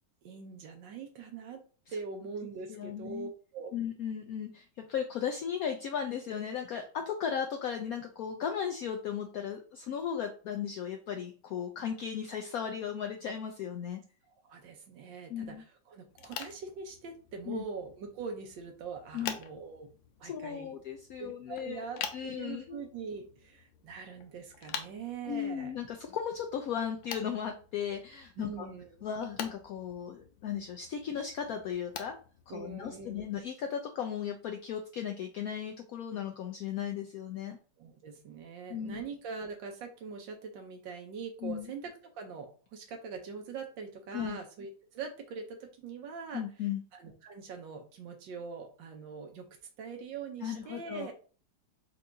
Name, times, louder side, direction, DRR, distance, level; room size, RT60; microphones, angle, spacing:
voice 1, 0.2-1.6 1.9-3.7 14.4-19.9 20.2-20.7 21.2-25.7 28.4-29.1 32.5-33.3 37.8-46.4 46.9-49.5 49.8-51.1, right 5 dB, 80° right, 3 dB, 1.5 m, -43 dB
voice 2, 2.7-3.3 3.7-14.0 15.3-15.6 17.5-17.6 19.1-19.4 20.2-21.8 22.1-22.8 25.3-28.7 29.0-32.2 32.5-37.6 38.7-39.0 41.4-41.7 44.1-44.4 46.3-46.8 50.4-51.1, left 8 dB, 75° left, 4 dB, 0.8 m, -36 dB
sound 1, 16.1-33.4, left 8 dB, 90° left, 1.4 m, -47 dB
4.6 x 4.2 x 2.6 m, 0.39 s
omnidirectional pair, 2.0 m